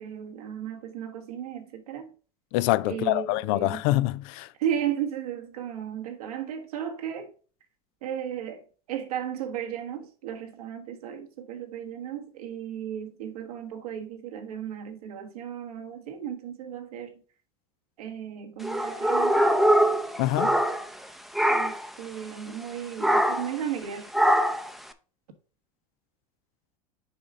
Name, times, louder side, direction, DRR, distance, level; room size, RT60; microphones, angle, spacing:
voice 1, 0.0-2.1 2.9-3.8 4.6-7.3 8.0-8.6 8.9-17.1 18.0-19.6 21.5-24.1, right 9 dB, 90° right, 1.5 m, -35 dB
voice 2, 2.5-4.5 20.2-20.6, left 17 dB, 65° left, 0.5 m, -25 dB
sound 1, 18.6-21.1 21.3-21.9 23.0-23.6 24.1-24.7, right 1 dB, ahead, 0.6 m, -23 dB
6.8 x 5.1 x 3.6 m
supercardioid pair, 100°, 19 cm